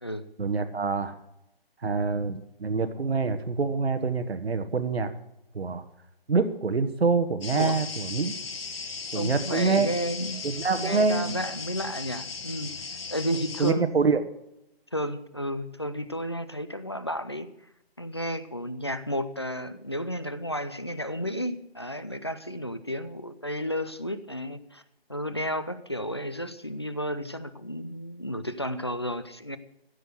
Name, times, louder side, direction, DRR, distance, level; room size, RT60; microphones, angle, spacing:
voice 1, 0.4-1.2 1.8-5.1 5.5-5.8 6.3-8.3 9.1-9.9 10.4-11.4 13.6-14.2, right 4 dB, 90° right, 9 dB, 1.4 m, -26 dB
sound 1, 7.4-13.7, left 4 dB, 70° left, 1.6 m, -37 dB
voice 2, 9.1-10.4 10.7-12.8 13.1-13.9 14.9-17.5 18.0-24.8 25.1-29.6, equal, 25° left, 12 dB, 0.5 m, -32 dB
15.5 x 6.8 x 7.9 m, 0.84 s
hypercardioid pair, 175°, 30 cm